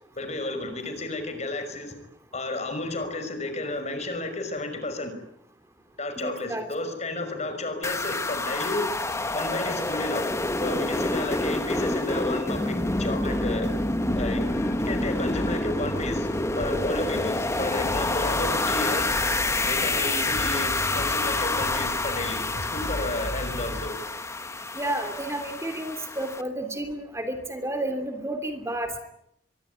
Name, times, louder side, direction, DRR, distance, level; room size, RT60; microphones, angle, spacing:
voice 1, 0.2-1.9 2.3-5.1 6.0-8.9 9.3-10.3 10.6-13.7 14.2-14.5 14.8-16.3 16.6-19.1 19.7-24.0, left 2 dB, 40° left, 8 dB, 5.8 m, -32 dB
voice 2, 6.2-6.7 24.7-29.0, right 1 dB, 15° right, 7 dB, 3.0 m, -31 dB
sound 1, 7.8-26.4, left 2 dB, 15° left, 1.6 m, -28 dB
sound 2, 12.8-23.9, left 1 dB, 60° left, 1.7 m, -37 dB
24.5 x 23.0 x 9.8 m, 0.75 s
head